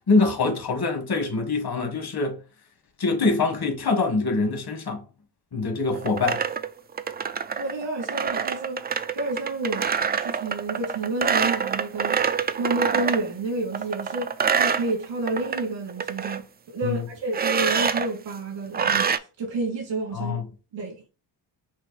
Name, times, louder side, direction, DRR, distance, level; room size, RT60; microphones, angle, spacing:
voice 1, 0.1-2.4 3.0-5.0 5.5-6.4 16.8-17.0 20.1-20.4, left 3 dB, 55° left, 1.5 m, -24 dB
sound 1, 5.9-13.3 13.7-15.6 15.9-16.4 17.3-18.1 18.7-19.2, right 6 dB, 25° right, 0.3 m, -26 dB
voice 2, 7.6-8.8 9.2-9.9 10.2-12.2 12.6-20.4 20.7-21.0, right 2 dB, 85° right, 2.2 m, -30 dB
6.1 x 2.2 x 3.1 m
cardioid pair, 65°, 44 cm